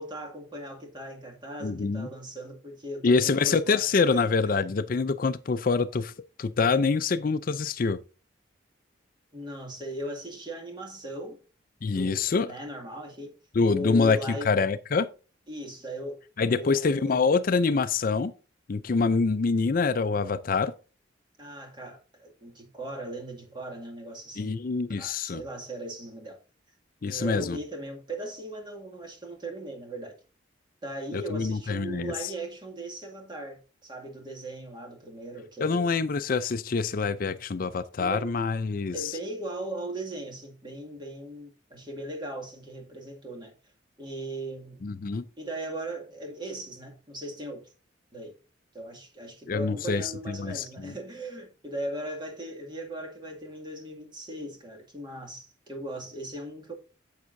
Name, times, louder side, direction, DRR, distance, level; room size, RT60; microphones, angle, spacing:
voice 1, 0.0-4.3 9.3-11.4 11.9-13.4 13.7-14.5 15.5-17.2 21.4-24.6 24.9-26.4 27.0-30.1 30.8-35.9 38.0-38.3 38.9-43.5 44.0-44.8 45.4-47.7 48.1-48.3 48.7-56.7, right 1 dB, 25° right, 2.2 m, -38 dB
voice 2, 1.6-2.1 3.0-6.1 6.4-8.0 11.8-12.5 13.6-15.1 16.4-18.3 18.7-20.7 24.4-25.4 27.0-27.6 31.1-32.3 35.6-39.1 44.8-45.2 49.5-50.9, left 4 dB, 45° left, 0.4 m, -25 dB
9.6 x 7.3 x 2.6 m
head